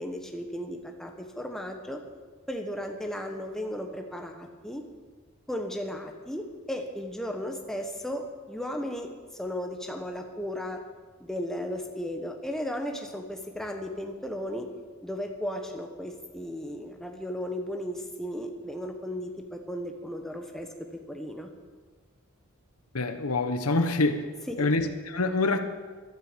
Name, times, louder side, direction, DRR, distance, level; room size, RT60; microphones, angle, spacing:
voice 1, 0.0-2.0 2.5-4.8 5.5-10.8 11.2-14.7 15.0-21.5 24.5-24.7, equal, ahead, 3 dB, 1.1 m, -35 dB
voice 2, 22.9-24.2 24.6-25.6, left 2 dB, 90° left, 8 dB, 1.2 m, -25 dB
15.0 x 12.5 x 5.2 m, 1.4 s
head